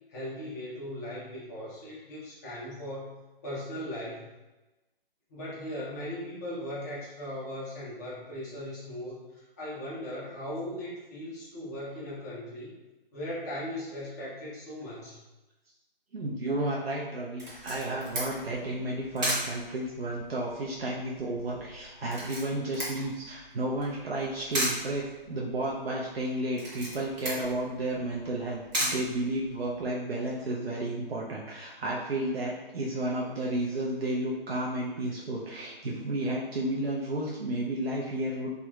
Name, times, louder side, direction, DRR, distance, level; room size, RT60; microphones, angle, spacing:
voice 1, 0.1-4.3 5.3-12.7 13.1-15.2, left 1 dB, 20° left, -7 dB, 0.5 m, -38 dB
voice 2, 16.1-38.5, right 1 dB, 90° right, -4 dB, 0.5 m, -32 dB
Camera, 17.4-29.9, right 1 dB, 50° right, 1.2 m, -37 dB
2.8 x 2.3 x 2.3 m, 1.1 s
figure-of-eight pair, 145°, 29 cm